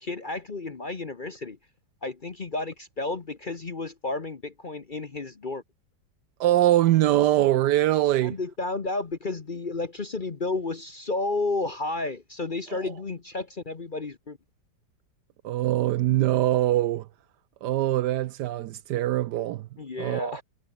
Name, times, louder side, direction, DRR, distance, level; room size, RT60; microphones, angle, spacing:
voice 1, 0.0-1.6 2.0-5.6 8.2-14.4 19.8-20.4, left 3 dB, 35° left, 1.0 m, -32 dB
voice 2, 6.4-8.4 12.7-12.9 15.4-17.1 17.6-19.7 20.0-20.4, right 14 dB, 75° right, 1.1 m, -23 dB
omnidirectional pair, 2.0 m